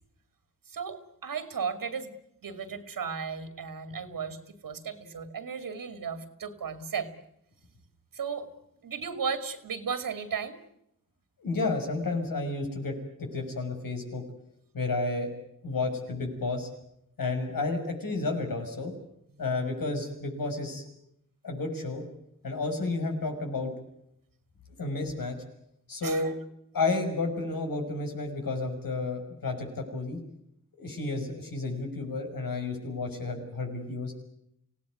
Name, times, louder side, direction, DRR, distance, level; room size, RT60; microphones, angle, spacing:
voice 1, 0.7-2.1 2.4-7.1 8.1-8.5 8.8-10.6 26.0-26.3, right 6 dB, 85° right, 9 dB, 2.6 m, -35 dB
voice 2, 11.4-14.2 14.7-15.3 15.6-16.7 17.2-18.9 19.4-20.9 21.4-22.0 22.4-23.7 24.8-25.4 25.9-26.3 26.7-30.2 30.8-34.1, left 3 dB, 90° left, 3 dB, 6.3 m, -31 dB
27.0 x 17.5 x 9.5 m, 0.77 s
wide cardioid pair, 95°, 33 cm